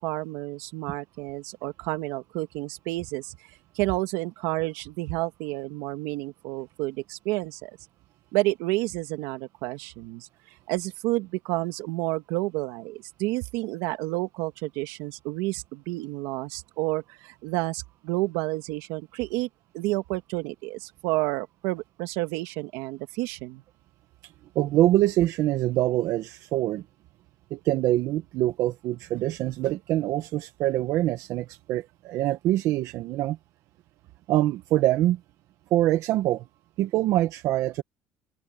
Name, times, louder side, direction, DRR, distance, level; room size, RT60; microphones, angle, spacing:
voice 1, 0.0-7.8 8.3-10.3 10.7-19.5 19.7-23.6, right 20 dB, 85° right, 2.0 m, -30 dB
voice 2, 24.2-26.8 27.5-33.4 34.3-35.2 35.7-36.4 36.8-37.8, right 14 dB, 65° right, 1.2 m, -24 dB
cardioid pair, 120°, 6 cm